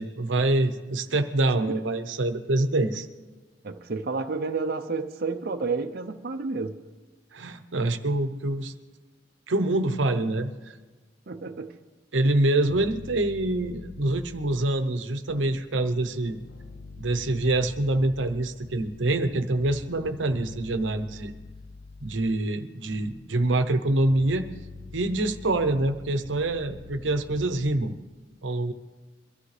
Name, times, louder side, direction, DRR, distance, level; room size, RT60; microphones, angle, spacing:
voice 1, 0.0-3.1 7.3-8.7 9.5-10.7 12.1-16.4 17.0-21.3 22.0-24.5 24.9-28.0 28.4-28.7, right 2 dB, 90° right, 0.8 m, -25 dB
voice 2, 1.5-1.8 3.6-6.8 11.3-11.8, right 4 dB, 55° right, 0.6 m, -30 dB
sound 1, 12.7-14.8 15.3-22.4 22.9-27.9, left 3 dB, 80° left, 0.7 m, -45 dB
23.0 x 13.0 x 3.3 m
head